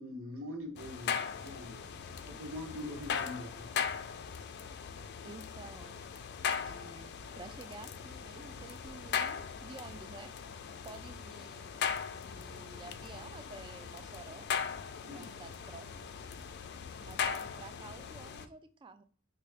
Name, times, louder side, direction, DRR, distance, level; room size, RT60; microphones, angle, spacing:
voice 1, 0.0-1.9 2.3-4.1 15.0-15.3, left 1 dB, 80° right, 3 dB, 0.9 m, -43 dB
sound 1, 0.8-18.5, left 7 dB, 55° left, 0.3 m, -39 dB
voice 2, 5.2-6.0 6.6-10.3 10.8-11.7 12.2-14.5 15.1-16.1 17.0-19.0, right 3 dB, 25° right, 10 dB, 0.3 m, -51 dB
3.6 x 2.3 x 3.2 m, 0.42 s
head